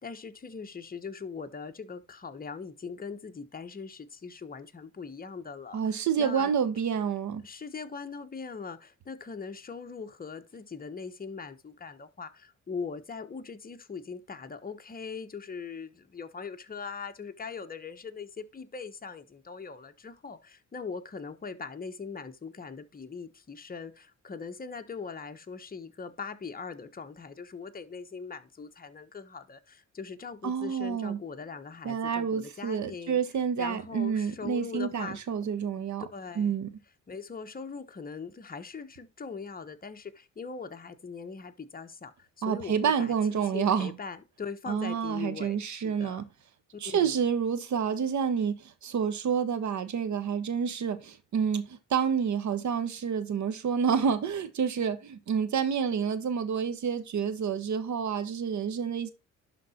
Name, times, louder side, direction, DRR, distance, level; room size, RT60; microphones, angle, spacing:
voice 1, 0.0-6.5 7.4-33.2 33.6-35.5 36.1-36.5 37.1-46.2 46.7-47.2, left 5 dB, 30° left, 1.2 m, -41 dB
voice 2, 5.7-7.4 30.4-31.2 31.8-36.1 36.4-36.7 42.4-43.9 44.7-46.3 46.8-59.1, right 7 dB, 65° right, 1.4 m, -29 dB
11.5 x 3.9 x 4.4 m
cardioid pair, 100°, 31 cm